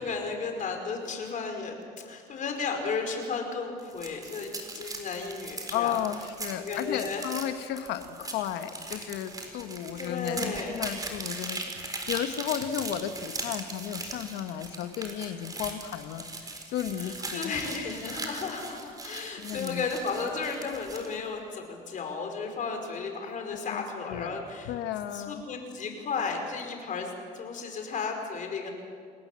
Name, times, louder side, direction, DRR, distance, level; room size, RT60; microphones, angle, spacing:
voice 1, 0.0-6.0 6.6-7.2 10.0-10.9 17.0-24.7 25.1-28.7, left 4 dB, 50° left, 3 dB, 5.3 m, -34 dB
sound 1, 3.8-21.2, right 2 dB, 20° right, 4.4 m, -39 dB
voice 2, 5.7-17.5 19.4-19.9 23.5-23.8 24.1-25.4, left 10 dB, 90° left, 9 dB, 1.3 m, -34 dB
29.0 x 19.0 x 7.6 m, 2.2 s
cardioid pair, 110°, 17 cm